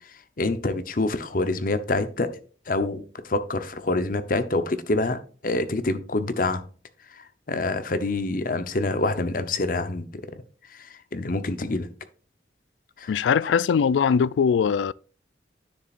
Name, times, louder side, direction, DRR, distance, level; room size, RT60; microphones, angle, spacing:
voice 1, 0.4-2.3 2.7-6.6 7.2-10.1 10.3-10.4 10.7-11.9 13.0-13.1, left 2 dB, 50° left, 0.8 m, -26 dB
voice 2, 13.1-14.9, left 6 dB, 85° left, 0.3 m, -21 dB
10.0 x 7.0 x 2.5 m
head